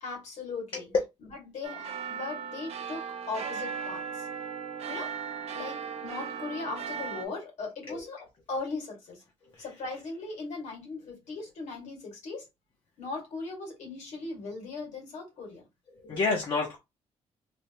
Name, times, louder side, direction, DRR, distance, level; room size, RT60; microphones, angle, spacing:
voice 1, 0.0-0.9 1.3-4.3 4.9-5.1 5.5-9.2 9.6-12.5 13.0-15.6, left 3 dB, 80° left, 2.0 m, -38 dB
sound 1, 1.6-7.3, right 6 dB, 65° right, 0.6 m, -37 dB
voice 2, 9.5-10.0 15.9-16.8, left 4 dB, 45° left, 0.7 m, -30 dB
3.3 x 2.6 x 2.9 m
cardioid pair, 155°, 12 cm